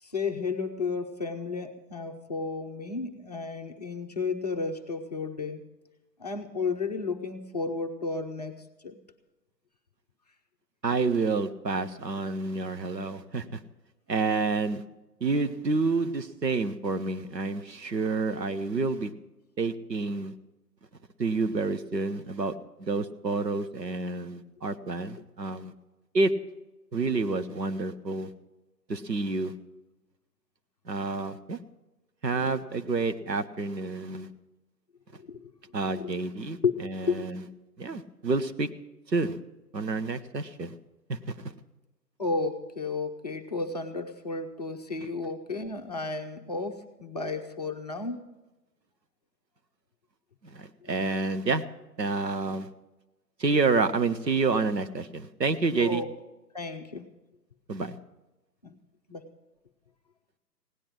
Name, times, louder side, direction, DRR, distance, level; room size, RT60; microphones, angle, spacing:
voice 1, 0.0-5.6 6.2-9.0 35.2-35.5 35.9-36.3 36.6-36.7 37.0-37.2 42.2-48.2 50.9-51.0 55.8-56.1 56.5-57.1 58.6-58.7 59.1-59.3, left 4 dB, 25° left, 4 dB, 0.7 m, -32 dB
voice 2, 10.8-13.6 14.1-14.8 15.2-19.1 19.6-20.3 21.2-22.5 22.8-25.7 26.1-26.3 26.9-28.3 28.9-29.5 30.9-31.6 32.2-34.3 35.7-37.4 37.8-38.7 39.1-39.4 39.7-40.7 41.1-41.5 50.4-51.6 52.0-52.7 53.4-56.0 57.7-58.0, right 3 dB, 75° right, 9 dB, 1.2 m, -29 dB
17.0 x 10.0 x 6.3 m, 1.1 s
figure-of-eight pair, 140°, 50 cm